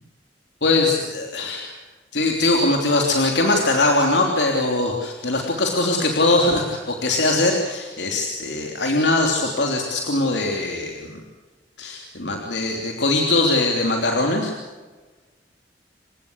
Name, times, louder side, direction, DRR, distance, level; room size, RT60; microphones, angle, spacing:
voice 1, 0.6-1.8 2.1-11.1 11.8-14.5, left 2 dB, 75° left, 2 dB, 3.2 m, -21 dB
29.5 x 16.5 x 8.1 m, 1.3 s
head